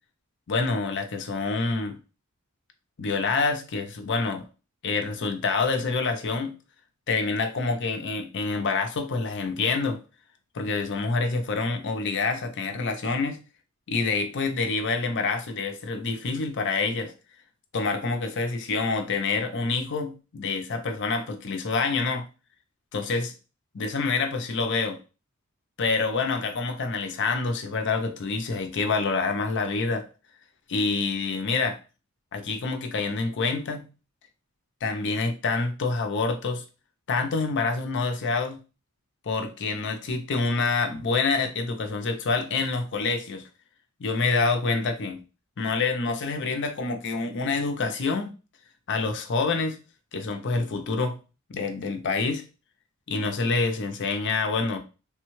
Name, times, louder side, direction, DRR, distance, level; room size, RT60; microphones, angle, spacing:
voice 1, 0.5-2.0 3.0-4.4 4.8-6.5 7.1-10.0 10.5-13.4 13.9-17.1 17.7-22.2 22.9-23.3 23.7-25.0 25.8-30.1 30.7-31.8 32.3-33.9 34.8-36.6 37.1-38.6 39.2-43.5 44.0-45.2 45.6-48.3 48.9-49.8 50.1-51.2 51.5-52.4 53.1-54.8, left 4 dB, 55° left, 6 dB, 0.6 m, -27 dB
3.3 x 2.2 x 3.0 m, 0.31 s
head